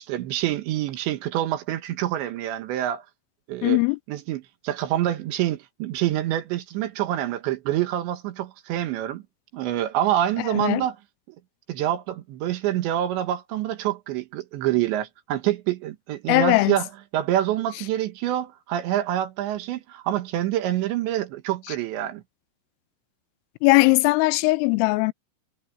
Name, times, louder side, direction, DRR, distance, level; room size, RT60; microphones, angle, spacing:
voice 1, 0.0-3.0 3.5-3.8 4.1-9.2 9.5-11.0 11.3-11.4 11.7-16.9 17.1-22.2, right 12 dB, 75° right, 3.3 m, -26 dB
voice 2, 3.6-4.0 10.5-10.8 16.3-16.8 23.6-25.1, left 24 dB, 90° left, 3.2 m, -19 dB
omnidirectional pair, 5.8 m